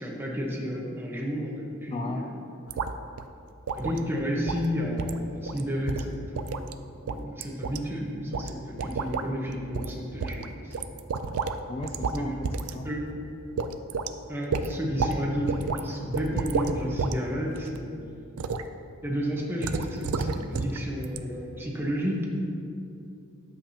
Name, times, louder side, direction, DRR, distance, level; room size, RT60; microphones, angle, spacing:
voice 1, 0.0-2.2 3.8-6.7 7.0-10.7 12.0-12.3 12.8-13.3 14.3-17.9 19.0-22.3, equal, 10° right, -2 dB, 1.1 m, -31 dB
voice 2, 1.9-2.3 11.7-12.9, left 2 dB, 25° left, 4 dB, 0.3 m, -37 dB
sound 1, 2.7-2.9 3.2-3.3 3.7-4.0 4.5-4.7 5.0-5.2 5.5-5.6 5.9-6.7 7.1-7.8 8.3-8.5 8.8-9.3 9.7-9.9 10.2-11.6 11.8-12.2 12.4-12.7 13.1-13.2 13.6-14.1 14.5-15.2 15.5-15.8 16.1-17.1 17.5-17.8 18.4-18.6 19.6-20.8 21.0-21.2, right 4 dB, 75° right, 0.4 m, -30 dB
11.0 x 7.5 x 2.8 m, 2.6 s
head